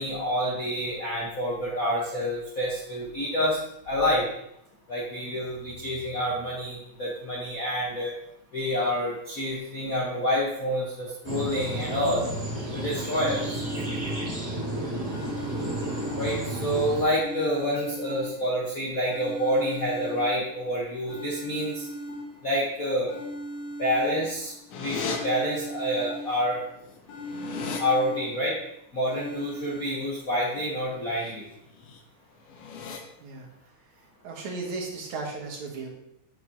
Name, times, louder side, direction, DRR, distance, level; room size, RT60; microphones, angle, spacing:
voice 1, 0.0-3.6 3.9-4.3 4.9-8.1 8.5-12.2 12.7-13.6 16.2-21.9 22.4-23.1 23.8-26.6 27.8-28.5 28.9-31.4, equal, 50° left, -5 dB, 1.0 m, -28 dB
sound 1, 11.2-17.0, right 1 dB, 10° right, 2.3 m, -32 dB
sound 2, 13.1-14.7 15.1-16.7 17.1-18.7 19.1-20.7 21.1-22.7 23.1-24.7 25.1-26.7 27.1-28.7 29.1-29.9, equal, 85° left, 2.5 m, -38 dB
sound 3, 24.7-25.2 26.4-26.5 26.8-27.8 31.0-31.3 31.7-32.0 32.5-33.0, left 5 dB, 70° left, 1.5 m, -36 dB
voice 2, 34.2-35.9, right 3 dB, 75° right, 0 dB, 2.7 m, -35 dB
8.3 x 6.8 x 2.9 m, 0.78 s
omnidirectional pair, 3.4 m